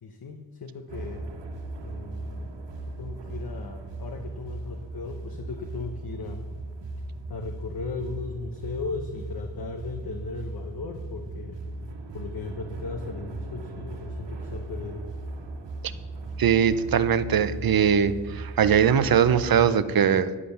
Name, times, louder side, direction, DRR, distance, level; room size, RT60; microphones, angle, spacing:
voice 1, 0.0-1.2 1.8-2.5 3.0-6.5 7.3-11.6 12.1-15.0, left 4 dB, 60° left, 4 dB, 1.0 m, -37 dB
sound 1, 0.9-19.7, right 2 dB, 80° right, 1.3 m, -37 dB
voice 2, 16.4-20.3, right 8 dB, 55° right, 14 dB, 0.7 m, -21 dB
11.0 x 7.6 x 6.8 m, 1.4 s
wide cardioid pair, 165°, 42 cm